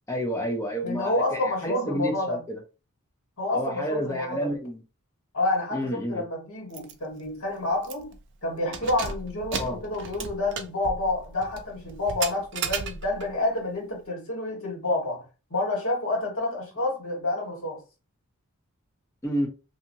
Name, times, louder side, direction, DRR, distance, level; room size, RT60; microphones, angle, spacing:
voice 1, 0.1-2.6 3.5-4.8 5.7-6.2 9.5-9.8 19.2-19.5, equal, 15° left, 0.6 m, -30 dB
voice 2, 0.8-2.4 3.4-4.5 5.3-8.1 8.4-17.8, left 2 dB, 65° left, 1.5 m, -29 dB
Keys jangling, 6.7-6.9 7.3-7.4 7.8-8.2 8.6-13.3, right 6 dB, 50° right, 0.4 m, -35 dB
2.7 x 2.7 x 2.6 m
head